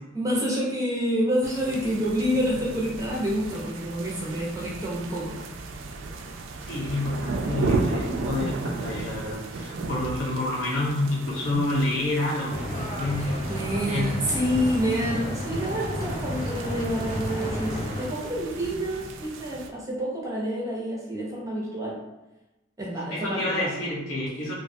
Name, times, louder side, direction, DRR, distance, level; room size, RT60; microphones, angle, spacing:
voice 1, 0.1-5.4 13.2-22.0 22.8-23.7, equal, 15° right, -5 dB, 0.5 m, -28 dB
sound 1, 1.4-19.7, right 3 dB, 80° right, 0.3 m, -34 dB
voice 2, 6.6-13.3 13.9-14.2 23.1-24.6, left 2 dB, 85° left, -6 dB, 1.0 m, -28 dB
sound 2, 12.5-18.1, left 1 dB, 40° left, 0.7 m, -32 dB
2.5 x 2.2 x 2.6 m, 0.99 s
head